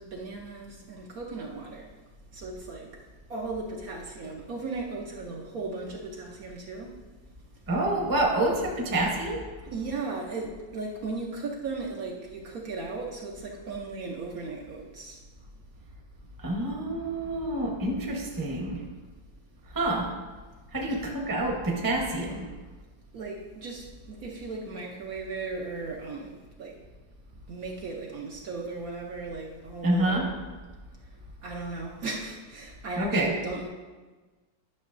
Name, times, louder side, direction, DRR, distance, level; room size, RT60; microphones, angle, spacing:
voice 1, 0.0-1.9 2.3-2.9 3.3-7.0 9.7-15.2 20.9-21.0 23.1-26.8 27.5-30.3 31.4-33.7, right 3 dB, 60° right, -1 dB, 1.1 m, -36 dB
voice 2, 7.7-9.4 16.4-18.8 19.7-20.1 20.7-22.5 29.8-30.2 33.0-33.3, right 1 dB, 15° right, -1 dB, 0.8 m, -27 dB
11.0 x 6.2 x 2.6 m, 1.3 s
omnidirectional pair, 1.9 m